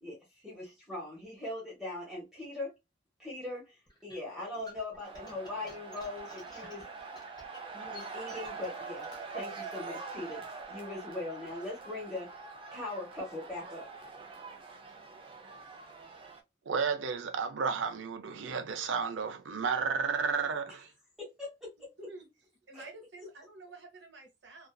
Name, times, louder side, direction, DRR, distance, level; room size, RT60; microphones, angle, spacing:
voice 1, 0.0-2.7 3.2-6.9 7.7-9.1 9.3-10.4 10.7-12.3 12.7-13.9 21.2-21.7 22.7-22.8, left 2 dB, ahead, 0.9 m, -40 dB
sound 1, 3.9-9.2, left 1 dB, 20° left, 0.8 m, -53 dB
sound 2, 5.0-16.4, right 4 dB, 30° right, 0.4 m, -44 dB
voice 2, 16.7-20.9, right 5 dB, 85° right, 0.5 m, -32 dB
voice 3, 21.8-22.3 22.7-24.7, right 2 dB, 65° right, 0.9 m, -49 dB
2.4 x 2.4 x 2.2 m
head